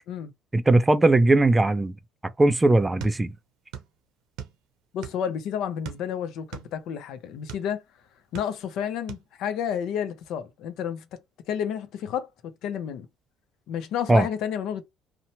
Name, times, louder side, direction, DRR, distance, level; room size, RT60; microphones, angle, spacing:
voice 1, 0.5-1.9 2.4-3.3 14.1-14.3, right 2 dB, 15° right, 0.3 m, -19 dB
sound 1, 3.0-3.9 4.2-5.3 5.8-7.7 8.1-8.8 9.1-9.3, right 9 dB, 80° right, 0.6 m, -40 dB
voice 2, 4.9-7.8 8.3-11.1 11.5-13.1 13.7-14.8, left 8 dB, 70° left, 0.5 m, -31 dB
2.8 x 2.1 x 2.7 m
cardioid pair, 100°, 0 cm